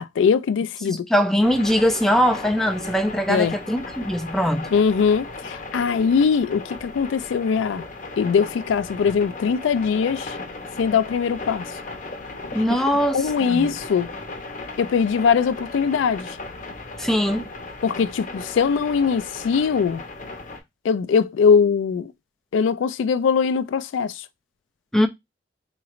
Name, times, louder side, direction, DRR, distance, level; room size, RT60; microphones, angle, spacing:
voice 1, 0.0-1.1 3.3-3.5 4.7-7.8 8.2-10.4 10.8-11.8 13.1-14.1 14.8-16.4 17.8-20.0 20.8-22.1 22.5-24.2, left 6 dB, 90° left, 0.3 m, -21 dB
voice 2, 0.9-4.7 12.5-13.7 17.0-17.5 24.9-25.1, equal, ahead, 0.4 m, -21 dB
sound 1, 1.4-20.6, left 2 dB, 45° left, 0.7 m, -36 dB
3.9 x 3.0 x 2.4 m
head